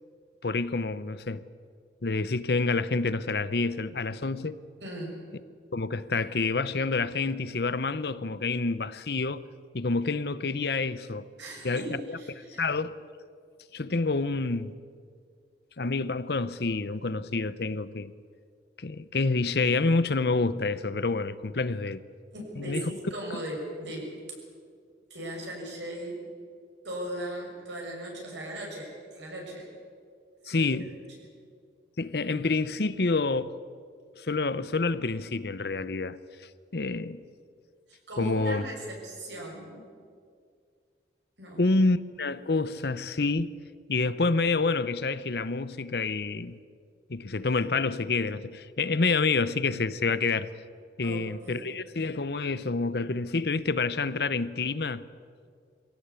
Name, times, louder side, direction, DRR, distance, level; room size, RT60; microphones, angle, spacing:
voice 1, 0.4-1.4 2.0-4.6 5.7-9.4 9.7-11.3 11.6-12.2 12.6-13.0 13.7-14.8 15.8-18.1 18.8-22.0 22.6-22.9 30.5-30.9 32.0-33.5 34.2-36.2 36.7-37.2 38.2-38.6 41.6-43.5 43.9-46.6 47.1-50.5 51.0-55.0, left 3 dB, 65° left, 0.8 m, -28 dB
voice 2, 4.8-5.2 11.4-12.6 22.3-24.1 25.1-26.2 26.8-29.7 30.5-30.7 37.9-39.9 41.4-41.6 51.0-51.7, right 1 dB, 85° right, 6.9 m, -38 dB
23.0 x 17.0 x 8.3 m
head